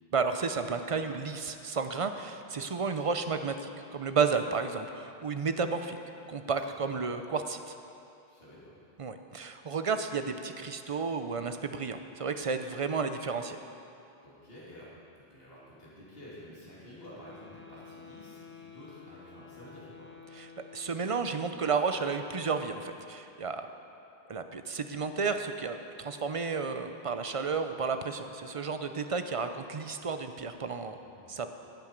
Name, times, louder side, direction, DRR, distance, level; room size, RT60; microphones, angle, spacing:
voice 1, 0.1-6.0 6.3-7.7 9.0-13.6 20.4-20.5 20.7-23.7 24.3-31.0 31.3-31.5, right 5 dB, 40° right, 8 dB, 0.6 m, -32 dB
voice 2, 8.3-8.7 14.2-14.9 15.1-20.1 31.0-31.4, left 1 dB, 70° left, -9 dB, 3.3 m, -50 dB
sound 1, 17.0-21.5, left 5 dB, 10° left, 1.1 m, -51 dB
16.0 x 8.8 x 5.2 m, 2.7 s
omnidirectional pair, 1.0 m